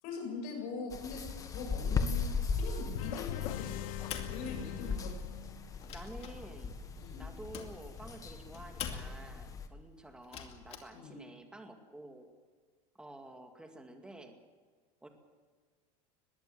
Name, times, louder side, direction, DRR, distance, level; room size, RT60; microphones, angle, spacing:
voice 1, 0.0-1.2 1.5-3.9 4.3-5.2 6.9-7.2 10.9-11.2, left 4 dB, 50° left, 2 dB, 7.7 m, -42 dB
sound 1, 0.9-9.7, left 5 dB, 20° left, 1.5 m, -38 dB
sound 2, 3.0-5.8, left 13 dB, 85° left, 1.0 m, -41 dB
sound 3, 4.0-5.2 5.6-9.4 10.2-10.8, left 7 dB, 35° left, 2.4 m, -45 dB
voice 2, 4.4-5.2 5.9-6.8 7.2-12.3 12.9-14.4 15.0-15.1, right 1 dB, 5° right, 4 dB, 2.1 m, -50 dB
21.5 x 16.0 x 7.6 m, 1.5 s
supercardioid pair, 155°, 17 cm